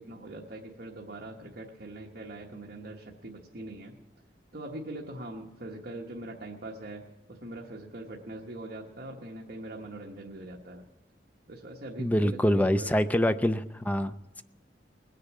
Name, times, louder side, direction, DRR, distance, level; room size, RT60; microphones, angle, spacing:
voice 1, 0.0-3.9 4.5-10.8 11.5-13.3, right 1 dB, 60° right, -1 dB, 1.1 m, -42 dB
voice 2, 12.0-14.4, equal, 10° left, 12 dB, 0.4 m, -25 dB
19.5 x 6.6 x 8.2 m, 1.0 s
head